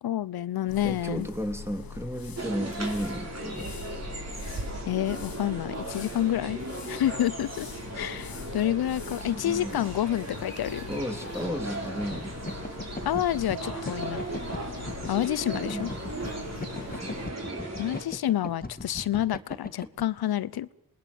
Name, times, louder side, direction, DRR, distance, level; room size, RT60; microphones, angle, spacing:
voice 1, 0.0-1.3 4.9-6.6 6.9-7.7 7.9-10.8 13.0-14.3 15.1-15.9 17.8-20.7, left 12 dB, 90° left, 19 dB, 0.8 m, -28 dB
sound 1, 0.7-17.3, left 6 dB, 70° left, 1.5 m, -43 dB
voice 2, 0.8-3.7 9.2-9.9 10.9-12.4 15.6-15.9 16.9-17.2, equal, 5° right, 5 dB, 3.5 m, -34 dB
sound 2, 2.4-18.0, right 2 dB, 45° right, 5.4 m, -37 dB
sound 3, 12.1-20.0, left 2 dB, 25° left, 1.9 m, -38 dB
27.5 x 20.0 x 7.2 m, 0.82 s
cardioid pair, 55°, 36 cm